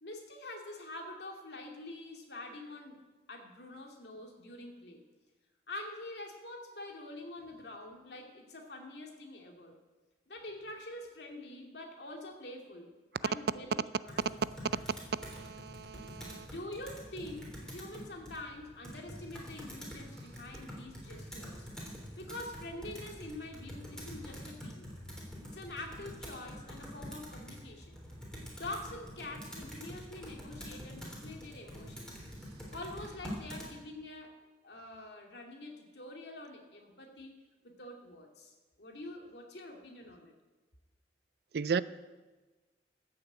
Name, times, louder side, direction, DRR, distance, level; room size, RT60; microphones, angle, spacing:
voice 1, 0.0-3.0 3.3-5.0 5.7-9.8 10.3-12.9 13.2-14.2 16.4-21.7 22.1-25.0 25.5-28.0 28.5-32.1 32.7-34.3 34.6-37.3 37.6-40.3, left 2 dB, 70° left, 2.4 m, -46 dB
Computer keyboard, 14.1-33.7, equal, 5° left, 3.2 m, -46 dB
voice 2, 15.1-16.5 41.5-41.8, right 6 dB, 60° right, 0.4 m, -35 dB
14.5 x 6.9 x 8.1 m
head